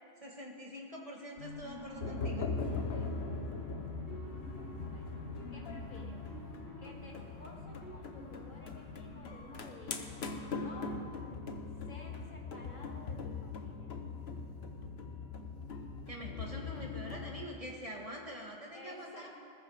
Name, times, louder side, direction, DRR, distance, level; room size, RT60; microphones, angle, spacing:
voice 1, 0.2-2.5 16.1-19.3, equal, 25° right, -1 dB, 1.9 m, -45 dB
sound 1, 1.4-10.2, equal, 60° right, 3.5 m, -49 dB
sound 2, 2.0-17.5, left 4 dB, 55° left, 1.2 m, -41 dB
voice 2, 2.9-3.4 4.9-5.1 5.5-6.3 6.8-10.2 10.6-10.9 11.9-14.0 18.7-19.3, left 2 dB, 80° left, -1 dB, 2.9 m, -53 dB
20.5 x 14.0 x 5.1 m, 2.4 s
omnidirectional pair, 1.3 m